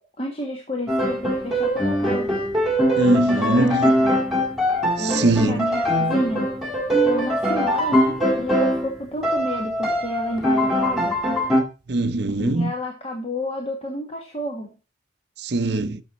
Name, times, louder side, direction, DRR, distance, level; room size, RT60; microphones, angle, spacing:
voice 1, 0.2-2.3 3.4-4.2 5.0-6.6 7.0-11.2 12.3-14.8, left 1 dB, 30° left, 1.5 m, -30 dB
Piano, 0.9-8.9 9.2-11.6, equal, ahead, 1.8 m, -22 dB
voice 2, 3.0-3.9 5.0-5.6 11.9-12.7 15.4-16.0, right 2 dB, 55° right, 0.7 m, -21 dB
13.0 x 6.3 x 4.2 m
head